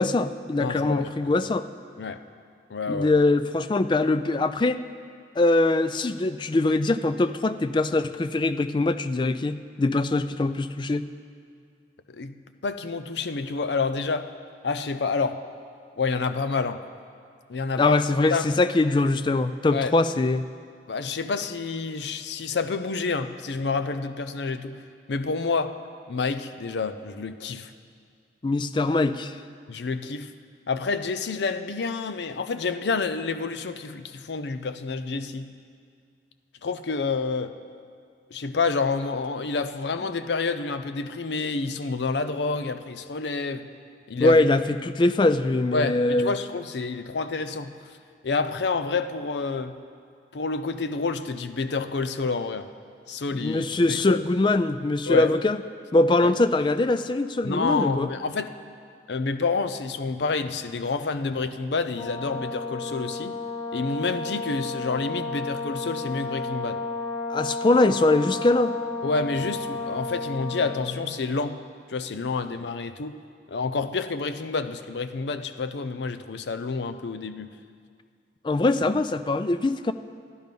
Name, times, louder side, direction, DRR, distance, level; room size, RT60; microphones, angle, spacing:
voice 1, 0.0-1.6 2.9-4.8 5.4-11.1 17.8-20.4 28.4-29.4 44.2-46.4 53.3-55.6 55.9-58.1 67.3-68.8 78.4-79.9, left 2 dB, 25° left, 11 dB, 0.3 m, -22 dB
voice 2, 0.6-1.3 2.0-2.2 2.7-3.1 12.1-12.3 12.6-14.3 14.6-15.4 16.0-16.8 17.5-18.0 18.3-18.5 19.7-19.9 20.9-24.8 25.1-25.8 26.1-27.7 29.7-30.3 30.7-35.5 36.6-37.5 38.3-43.7 44.1-44.4 45.7-47.7 48.2-49.8 50.3-52.7 53.1-54.2 55.1-55.3 56.2-56.3 57.4-58.5 59.1-63.3 63.7-66.8 69.0-71.6 71.9-73.1 73.5-77.5, left 4 dB, 75° left, 10 dB, 0.6 m, -28 dB
Brass instrument, 61.9-70.8, left 3 dB, 55° left, 3.0 m, -32 dB
12.5 x 10.5 x 5.3 m, 2.2 s
head